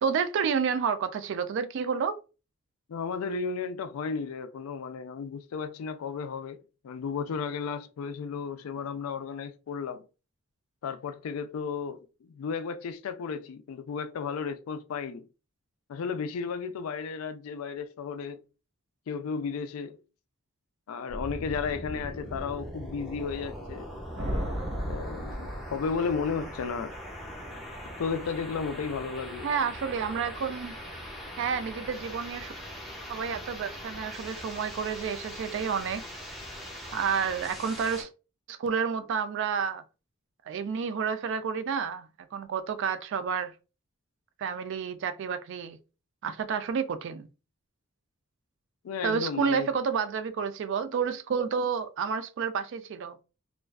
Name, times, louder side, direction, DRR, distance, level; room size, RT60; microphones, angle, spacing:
voice 1, 0.0-2.2 29.4-30.7 31.4-32.5 33.1-36.0 36.9-38.1 38.5-39.8 40.5-43.5 44.4-45.8 46.2-47.3 49.0-53.2, right 6 dB, 60° right, 0.3 m, -30 dB
voice 2, 2.9-10.0 10.8-15.3 15.9-18.4 19.1-20.0 20.9-23.9 24.8-27.0 28.0-29.5 48.8-49.7, left 5 dB, 85° left, 0.3 m, -34 dB
sound 1, 21.1-38.0, equal, ahead, 0.5 m, -41 dB
sound 2, 24.2-26.3, equal, 85° right, 0.9 m, -34 dB
2.4 x 2.2 x 2.3 m
head